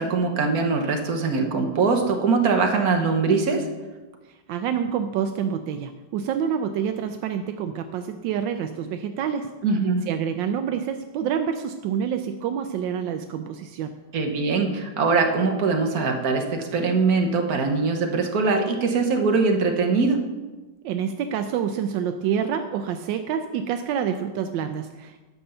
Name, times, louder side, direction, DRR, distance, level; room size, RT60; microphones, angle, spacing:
voice 1, 0.0-3.6 9.6-10.1 14.1-20.2, right 4 dB, 55° right, 3 dB, 1.6 m, -22 dB
voice 2, 4.3-9.5 10.1-14.0 20.8-25.2, right 8 dB, 80° right, 7 dB, 1.3 m, -27 dB
10.0 x 5.5 x 6.8 m, 1.2 s
omnidirectional pair, 2.0 m